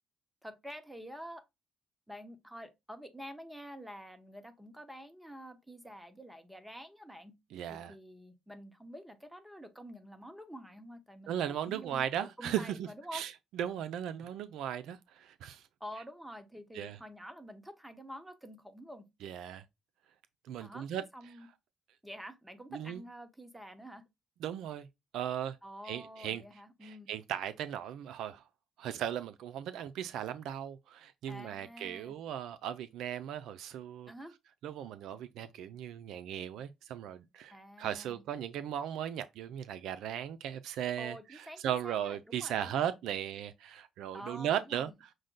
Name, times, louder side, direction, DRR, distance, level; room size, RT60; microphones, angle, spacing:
voice 1, 0.4-1.4 2.1-7.4 7.7-13.2 15.8-19.4 20.6-21.5 22.0-24.1 25.6-27.1 31.3-32.1 34.1-34.3 37.5-38.2 41.0-42.9 44.1-44.9, equal, 5° right, 1.0 m, -48 dB
voice 2, 7.5-7.9 11.3-15.6 16.7-17.0 19.2-19.6 20.4-21.0 22.7-23.0 24.4-24.9 25.1-25.6 25.8-26.4 26.8-28.4 28.8-34.1 34.6-44.9, right 10 dB, 85° right, 0.4 m, -37 dB
6.2 x 2.2 x 3.8 m
cardioid pair, 90°, 0 cm